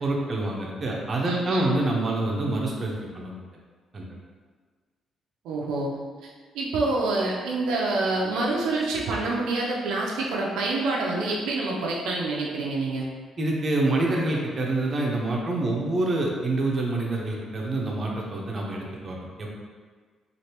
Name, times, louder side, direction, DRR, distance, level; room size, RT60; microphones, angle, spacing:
voice 1, 0.0-3.4 3.9-4.1 13.4-19.5, right 2 dB, 35° right, -2 dB, 0.6 m, -27 dB
voice 2, 1.3-1.8 5.4-5.9 6.2-6.3 6.5-13.1, right 2 dB, 90° right, -3 dB, 0.4 m, -27 dB
3.1 x 2.5 x 2.8 m, 1.5 s
cardioid pair, 90°, 0 cm